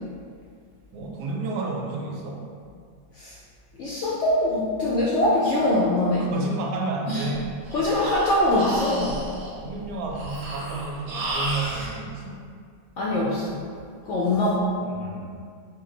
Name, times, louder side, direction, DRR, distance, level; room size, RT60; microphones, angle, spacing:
voice 1, 0.9-2.4 6.1-7.5 9.6-12.4 14.8-15.3, right 3 dB, 85° right, 0 dB, 1.1 m, -31 dB
voice 2, 3.8-6.3 7.1-7.3 7.7-9.2 13.0-13.6 14.1-14.7, left 1 dB, 70° left, -6 dB, 0.7 m, -23 dB
Breathing, 7.3-11.9, right 1 dB, 55° right, 0.6 m, -33 dB
3.8 x 2.2 x 3.8 m, 2.1 s
omnidirectional pair, 1.7 m